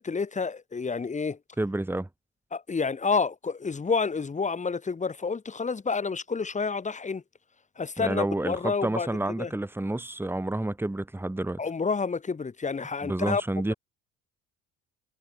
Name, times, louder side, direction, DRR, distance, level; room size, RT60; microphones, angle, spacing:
voice 1, 0.0-1.4 2.5-7.2 7.8-9.1 9.4-9.5 11.6-13.4, left 4 dB, 20° left, 5.0 m, -29 dB
voice 2, 1.6-2.1 8.0-11.6 13.0-13.7, right 1 dB, 5° right, 4.3 m, -29 dB
supercardioid pair, 105°, 32 cm